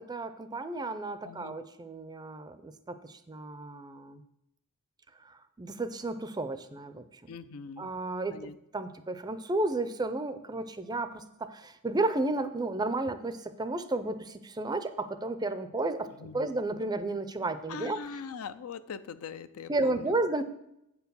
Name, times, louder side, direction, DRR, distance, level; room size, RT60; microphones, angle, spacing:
voice 1, 0.0-4.2 5.2-7.3 7.8-18.0 19.7-20.4, right 2 dB, 20° right, 11 dB, 0.4 m, -33 dB
voice 2, 1.2-1.5 7.3-7.9 8.3-8.6 16.2-16.5 17.7-20.4, left 6 dB, 70° left, 13 dB, 0.4 m, -42 dB
8.5 x 4.6 x 6.8 m, 0.83 s
head